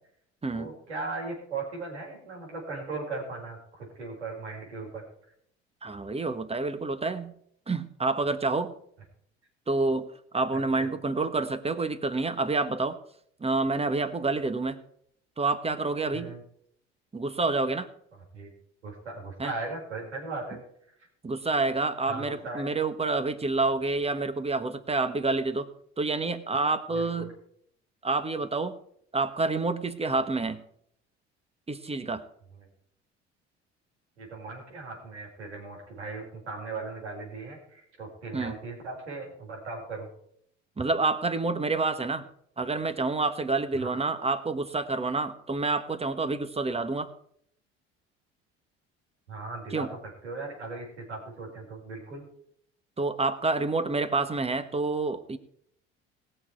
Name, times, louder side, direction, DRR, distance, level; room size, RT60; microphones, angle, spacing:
voice 1, 0.5-5.0 10.5-10.9 16.1-16.4 18.3-18.5 18.8-20.6 22.1-22.7 26.9-27.3 30.4-30.5 32.6-32.7 34.2-40.1 43.8-43.9 49.3-50.0 50.2-52.2, right 3 dB, 90° right, -2 dB, 4.3 m, -38 dB
voice 2, 5.8-7.3 7.7-8.7 9.7-13.0 13.4-14.8 15.4-16.3 17.1-17.9 19.4-19.5 21.2-25.7 26.0-27.3 28.0-28.8 29.1-30.6 31.7-32.2 38.3-38.5 40.8-42.3 42.6-47.1 49.7-49.9 53.0-55.4, right 3 dB, 20° right, 12 dB, 1.3 m, -28 dB
19.5 x 6.7 x 4.5 m, 0.67 s
hypercardioid pair, 60°, 33 cm